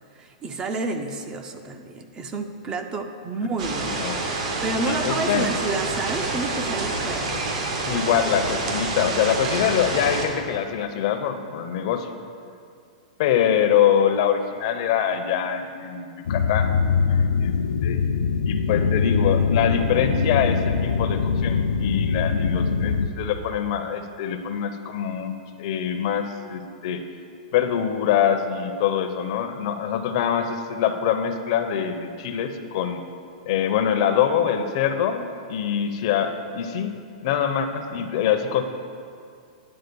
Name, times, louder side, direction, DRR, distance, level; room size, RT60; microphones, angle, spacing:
voice 1, 0.2-4.0 4.6-7.3, right 3 dB, 20° right, 7 dB, 0.5 m, -30 dB
sound 1, 3.6-10.3, right 3 dB, 65° right, 1.4 m, -27 dB
voice 2, 3.9-4.2 4.9-5.5 7.9-12.1 13.2-16.7 17.1-17.5 17.8-18.0 18.5-27.0 27.5-33.0 33.5-36.9 37.2-38.6, left 8 dB, 55° left, 7 dB, 0.7 m, -24 dB
sound 2, 16.3-23.1, left 5 dB, 90° left, 0.4 m, -22 dB
9.8 x 3.8 x 6.9 m, 2.4 s
hypercardioid pair, 145°, 4 cm